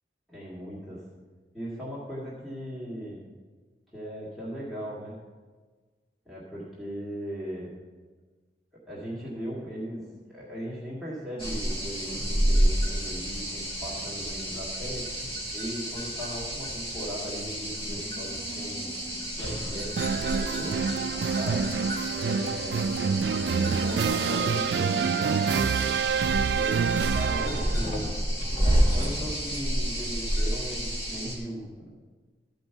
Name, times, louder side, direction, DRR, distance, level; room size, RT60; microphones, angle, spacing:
voice 1, 0.3-1.0 1.5-3.2 3.9-5.2 6.3-7.7 8.9-15.1 15.5-18.9 19.3-20.8 21.3-21.7 22.1-22.9 23.4-25.9 26.4-26.8 27.1-28.2 28.6-31.9, equal, ahead, -9 dB, 1.9 m, -38 dB
sound 1, 11.4-31.4, equal, 30° left, 2.1 m, -30 dB
sound 2, 20.0-27.8, right 6 dB, 65° right, 0.3 m, -27 dB
13.0 x 5.3 x 5.8 m, 1.4 s
head